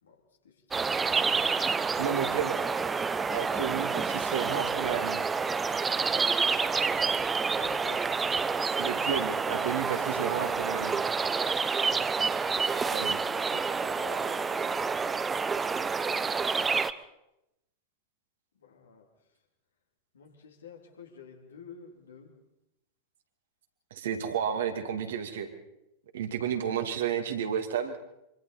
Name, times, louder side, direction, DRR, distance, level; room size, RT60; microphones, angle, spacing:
voice 1, 0.0-0.9 7.5-8.2 12.9-15.1 18.5-19.1 20.1-22.3, left 6 dB, 70° left, 2 dB, 3.1 m, -49 dB
sound 1, 0.7-16.9, right 5 dB, 15° right, 0.7 m, -28 dB
voice 2, 2.0-2.6 3.3-5.2 8.8-11.0 12.8-13.2 23.9-25.5 26.1-28.0, right 8 dB, 60° right, 5 dB, 2.4 m, -32 dB
25.0 x 25.0 x 4.3 m, 0.87 s
figure-of-eight pair, 90°, 0 cm